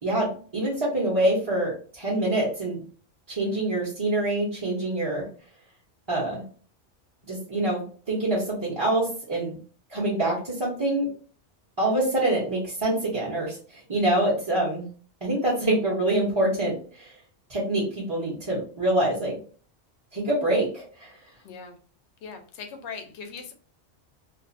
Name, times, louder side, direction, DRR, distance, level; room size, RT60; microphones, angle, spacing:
voice 1, 0.0-2.8 3.3-5.3 6.1-6.4 7.3-9.6 9.9-11.1 11.8-14.9 15.2-17.1 17.5-19.4 20.1-21.1, right 1 dB, 25° right, -6 dB, 0.8 m, -25 dB
voice 2, 21.4-21.8 22.2-23.5, left 5 dB, 75° left, 5 dB, 0.9 m, -39 dB
2.4 x 2.4 x 2.5 m, 0.41 s
omnidirectional pair, 1.2 m